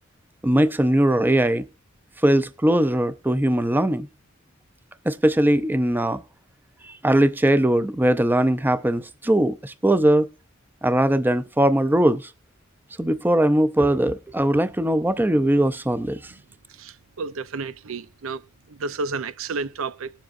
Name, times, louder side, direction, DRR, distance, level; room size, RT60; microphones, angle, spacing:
voice 1, 0.4-1.7 2.2-4.1 5.1-6.2 6.9-10.3 10.8-12.3 13.0-16.3, right 1 dB, 10° right, 0.5 m, -20 dB
voice 2, 16.7-18.4 18.7-20.1, right 4 dB, 75° right, 0.6 m, -31 dB
19.5 x 7.4 x 2.5 m
head